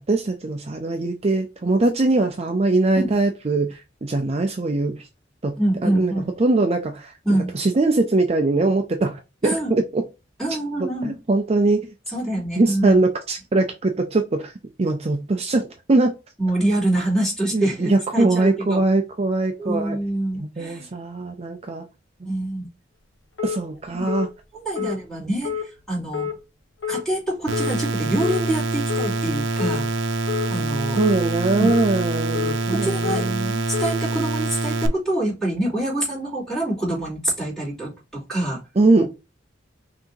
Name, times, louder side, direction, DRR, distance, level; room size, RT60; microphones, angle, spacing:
voice 1, 0.1-5.1 5.4-10.0 10.8-11.9 12.6-14.5 14.8-15.6 15.9-16.1 17.5-20.0 20.4-21.8 23.4-24.3 24.8-24.9 31.0-33.6 38.8-39.0, right 2 dB, 35° right, 0.5 m, -22 dB
voice 2, 5.6-6.3 7.2-7.6 9.4-9.7 10.4-11.2 12.1-13.0 16.4-18.9 19.6-20.9 22.2-22.7 23.9-24.1 24.6-25.5 25.9-26.3 26.9-29.9 30.5-31.0 31.6-31.8 32.7-33.3 33.7-38.6, right 1 dB, ahead, 2.9 m, -25 dB
sound 1, 23.4-23.6 24.1-24.3 24.8-25.0 25.4-25.7 26.1-26.3 26.8-27.0 27.5-27.7 28.2-28.4 28.9-29.1 29.6-29.8 30.3-30.5 31.0-31.2 31.6-31.9 32.3-32.6 33.0-33.2 33.7-33.9, left 8 dB, 70° left, 0.9 m, -28 dB
sound 2, 27.5-34.9, right 2 dB, 85° right, 0.7 m, -25 dB
5.8 x 2.9 x 2.7 m
head